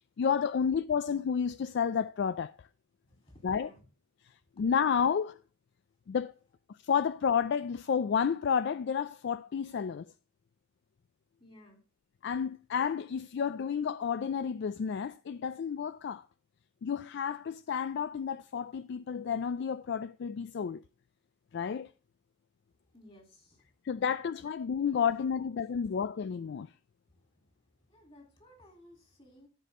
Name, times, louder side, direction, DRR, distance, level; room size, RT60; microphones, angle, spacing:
voice 1, 0.2-2.7 3.4-3.7 4.6-5.4 6.1-6.3 6.8-10.0 12.2-16.2 16.8-20.8 21.5-21.9 23.8-26.7, left 7 dB, 55° left, 0.3 m, -31 dB
voice 2, 3.0-3.9 11.4-11.8 22.7-23.8 25.6-26.0 27.1-29.5, left 1 dB, 30° left, 3.4 m, -58 dB
14.5 x 5.3 x 3.6 m
head